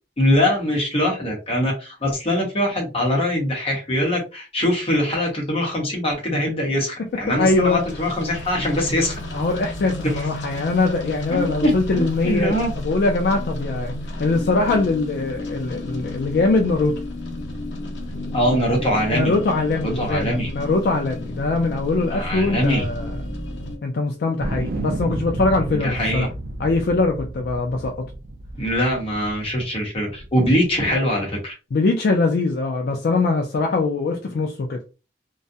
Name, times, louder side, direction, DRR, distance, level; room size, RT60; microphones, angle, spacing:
voice 1, 0.2-9.2 10.0-10.2 11.3-12.7 18.3-19.3 19.8-20.5 22.1-22.9 25.7-26.3 28.6-31.5, equal, 35° left, 1.0 m, -22 dB
sound 1, 7.2-23.8, left 1 dB, 85° left, 0.7 m, -32 dB
voice 2, 7.4-7.8 9.3-17.0 19.1-23.2 23.8-26.3 26.6-28.1 31.7-34.8, left 3 dB, 60° left, 0.4 m, -22 dB
sound 2, 24.4-29.6 30.2-30.9, right 2 dB, 55° right, 0.4 m, -31 dB
2.3 x 2.1 x 2.6 m
head